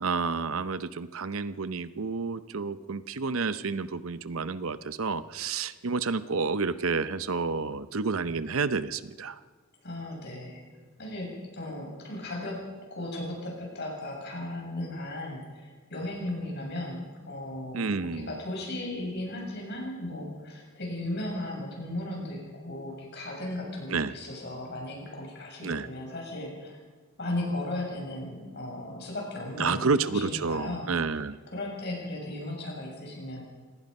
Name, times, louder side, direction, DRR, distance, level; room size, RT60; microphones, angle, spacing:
voice 1, 0.0-9.4 17.7-18.4 23.9-24.1 25.6-25.9 29.6-31.4, right 4 dB, 75° right, 13 dB, 0.8 m, -30 dB
voice 2, 9.8-10.6 11.0-12.6 12.9-26.8 27.2-33.4, left 1 dB, 50° left, 0 dB, 7.2 m, -36 dB
27.5 x 18.5 x 5.5 m, 1.4 s
head